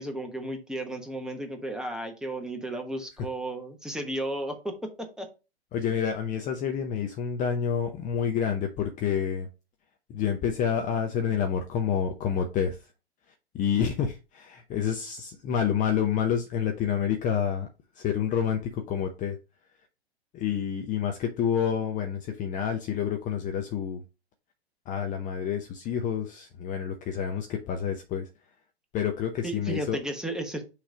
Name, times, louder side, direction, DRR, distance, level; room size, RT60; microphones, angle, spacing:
voice 1, 0.0-5.3 29.4-30.6, right 1 dB, ahead, 1.2 m, -34 dB
voice 2, 5.7-9.5 10.1-12.9 13.5-17.7 17.9-19.4 20.3-24.0 24.9-28.3 28.9-30.0, left 8 dB, 25° left, 0.7 m, -28 dB
6.1 x 3.3 x 5.0 m
hypercardioid pair, 115°, 32 cm